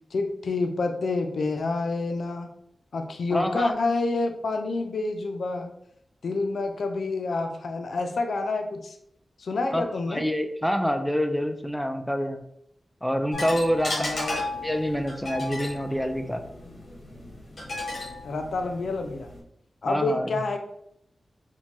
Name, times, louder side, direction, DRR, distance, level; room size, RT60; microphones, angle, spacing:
voice 1, 0.1-2.5 2.9-5.7 6.2-9.0 9.4-10.2 13.9-14.4 18.2-19.3 19.8-20.6, left 3 dB, 90° left, 5 dB, 0.4 m, -28 dB
voice 2, 3.3-3.7 9.7-12.4 13.0-14.2 14.6-16.4 19.9-20.4, equal, 5° left, 5 dB, 0.3 m, -27 dB
sound 1, 13.3-19.4, left 2 dB, 70° left, 1.2 m, -35 dB
4.3 x 2.2 x 2.9 m, 0.74 s
wide cardioid pair, 105°, 0 cm